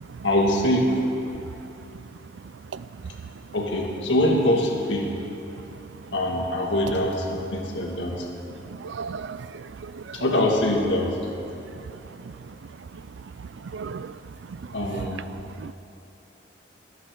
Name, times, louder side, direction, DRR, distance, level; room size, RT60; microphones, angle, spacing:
voice 1, 0.2-1.0 3.5-5.1 6.1-8.3 10.1-11.2 14.7-15.2, left 1 dB, 80° left, -1 dB, 2.0 m, -23 dB
voice 2, 8.7-9.5 9.9-10.2 13.7-14.1 14.9-15.0 15.6-15.7, right 5 dB, 75° right, 15 dB, 0.4 m, -35 dB
22.5 x 10.0 x 3.8 m, 2.9 s
head